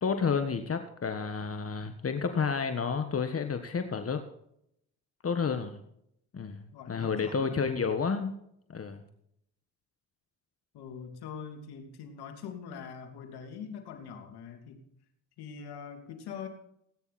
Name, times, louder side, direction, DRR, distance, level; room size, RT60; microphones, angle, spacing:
voice 1, 0.0-4.2 5.2-5.8 6.3-8.4 8.7-9.0, left 5 dB, 35° left, 7 dB, 1.5 m, -30 dB
voice 2, 6.7-7.6 10.7-14.8 15.4-16.5, left 7 dB, 80° left, 5 dB, 3.0 m, -43 dB
19.0 x 9.8 x 4.2 m, 0.74 s
supercardioid pair, 75°, 38 cm